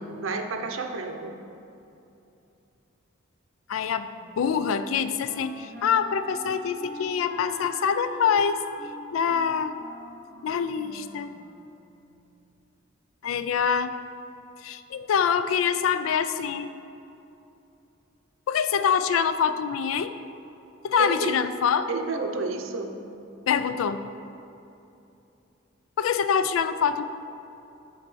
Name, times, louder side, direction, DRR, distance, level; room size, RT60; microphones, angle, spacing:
voice 1, 0.0-1.4 21.0-21.4 21.9-22.9, right 3 dB, 80° right, 5 dB, 0.6 m, -30 dB
voice 2, 3.7-4.1 4.4-8.6 9.1-9.8 10.4-11.3 13.2-13.9 14.6-16.7 18.5-20.1 20.8-21.9 23.5-24.1 26.0-27.0, left 7 dB, 85° left, 12 dB, 0.3 m, -25 dB
Wind instrument woodwind instrument, 4.2-12.0, equal, 5° left, 0.9 m, -43 dB
6.7 x 3.9 x 6.2 m, 2.8 s
head